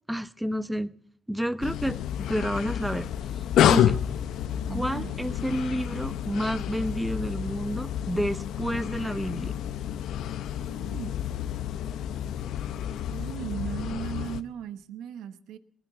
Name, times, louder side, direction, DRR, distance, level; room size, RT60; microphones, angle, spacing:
voice 1, 0.1-0.9 1.3-3.1 3.6-4.0 4.7-9.5, equal, 5° right, 15 dB, 0.7 m, -30 dB
sound 1, 1.6-14.4, left 10 dB, 85° left, 0.7 m, -29 dB
voice 2, 4.7-5.2 10.7-11.1 13.1-15.6, right 10 dB, 90° right, 13 dB, 0.9 m, -37 dB
20.0 x 9.5 x 7.0 m, 0.65 s
cardioid pair, 95°, 0 cm